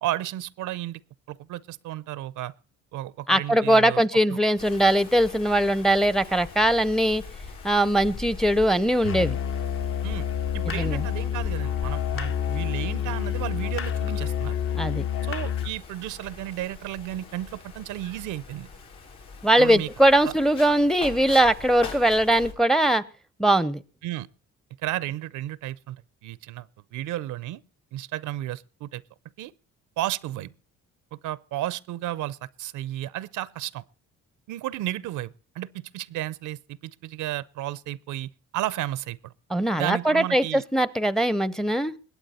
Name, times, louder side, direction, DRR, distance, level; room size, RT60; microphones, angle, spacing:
voice 1, 0.0-1.0 1.3-2.5 2.9-4.0 4.3-4.4 10.0-10.3 10.5-14.6 15.2-18.7 19.6-19.9 20.2-20.3 24.0-24.3 24.8-27.6 27.9-29.0 29.4-29.5 30.0-30.5 31.1-33.8 34.5-39.3 39.7-40.6, right 14 dB, 85° right, 0.6 m, -33 dB
voice 2, 3.3-7.2 7.6-9.4 10.6-11.1 14.8-15.1 19.4-23.0 23.4-23.8 39.5-41.9, right 1 dB, ahead, 0.5 m, -21 dB
Wind, 4.6-22.5, left 4 dB, 85° left, 6.8 m, -42 dB
Musical instrument, 9.0-15.8, left 9 dB, 45° left, 0.6 m, -28 dB
21.0 x 8.7 x 4.2 m
cardioid pair, 90°, 30 cm